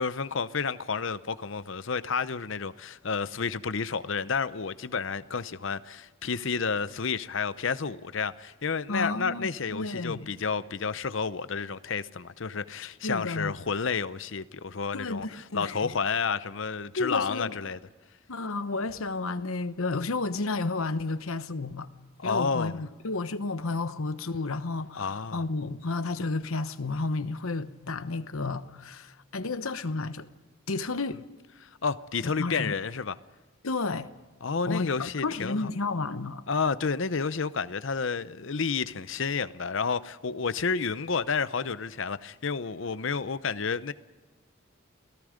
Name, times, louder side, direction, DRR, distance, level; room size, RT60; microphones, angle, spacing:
voice 1, 0.0-17.8 22.2-22.8 25.0-25.4 31.8-33.2 34.4-35.7 36.5-43.9, left 5 dB, 65° left, 0.7 m, -30 dB
voice 2, 8.9-10.3 12.8-13.6 14.9-16.0 17.0-17.6 18.3-21.9 22.2-30.3 30.7-31.2 32.2-32.7 33.6-34.1 34.7-36.4, left 3 dB, 80° left, 1.0 m, -32 dB
28.5 x 18.0 x 5.1 m
head